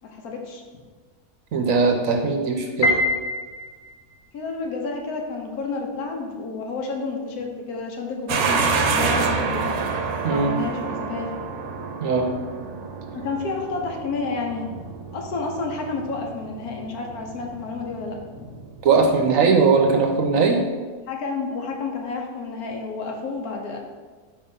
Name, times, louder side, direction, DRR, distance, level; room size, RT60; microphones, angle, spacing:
voice 1, 0.1-0.6 4.3-9.7 10.3-11.3 13.1-14.6 15.1-18.5 21.1-23.8, left 4 dB, 75° left, 1 dB, 1.3 m, -30 dB
voice 2, 1.5-2.9 10.2-10.6 12.0-12.3 18.8-20.6, right 4 dB, 65° right, 3 dB, 1.0 m, -19 dB
Piano, 2.8-4.1, left 1 dB, 55° left, 0.9 m, -23 dB
sound 1, 8.3-19.0, right 4 dB, 85° right, 1.2 m, -28 dB
4.9 x 3.7 x 5.5 m, 1.4 s
omnidirectional pair, 1.7 m